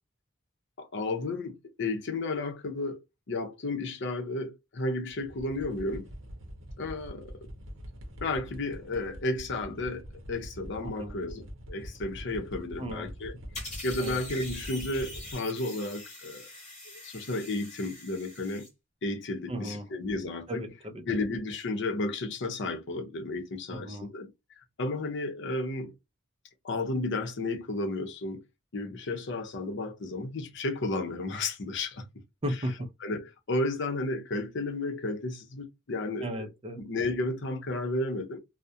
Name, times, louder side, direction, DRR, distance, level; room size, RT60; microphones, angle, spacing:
voice 1, 0.8-3.0 3.3-6.1 6.8-7.3 8.2-13.4 13.8-16.5 17.0-18.7 19.0-20.6 21.1-24.3 24.8-25.9 26.6-28.4 28.7-32.0 33.0-36.5 36.8-38.4, left 2 dB, 60° left, 0.6 m, -33 dB
sound 1, 5.1-15.4, equal, 70° right, 0.7 m, -44 dB
voice 2, 10.8-11.2 12.8-13.1 14.0-14.2 19.5-19.9 20.5-21.0 23.7-24.1 32.4-32.9 36.2-36.8, equal, 30° right, 0.5 m, -35 dB
sound 2, 13.5-18.7, left 2 dB, 35° left, 1.1 m, -43 dB
2.3 x 2.0 x 2.6 m
head